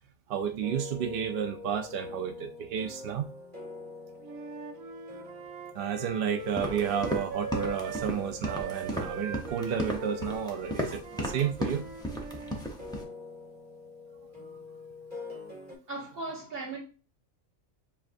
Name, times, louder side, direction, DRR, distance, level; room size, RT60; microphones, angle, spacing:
voice 1, 0.3-3.2 5.7-11.8, right 8 dB, 65° right, 0.6 m, -31 dB
sound 1, 0.6-15.8, left 3 dB, 25° right, 2.3 m, -45 dB
Wind instrument woodwind instrument, 4.2-8.1 8.4-12.7, right 5 dB, 85° right, 1.1 m, -41 dB
sound 2, 6.4-13.0, equal, 5° left, 0.5 m, -35 dB
voice 2, 15.9-16.8, right 3 dB, 45° right, 1.7 m, -37 dB
7.2 x 2.4 x 2.5 m
omnidirectional pair, 1.4 m